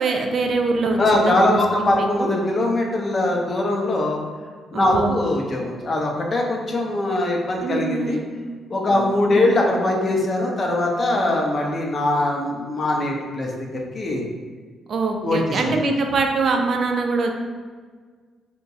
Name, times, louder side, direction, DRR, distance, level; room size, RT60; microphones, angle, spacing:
voice 1, 0.0-2.3 4.7-5.2 7.6-8.4 8.9-9.5 14.9-17.3, right 3 dB, 55° right, 3 dB, 0.3 m, -24 dB
voice 2, 1.0-4.2 4.7-8.2 8.7-13.7 13.9-14.2 15.2-15.8, left 1 dB, 45° left, 0 dB, 0.6 m, -21 dB
2.9 x 2.2 x 2.6 m, 1.5 s
hypercardioid pair, 45°, 0 cm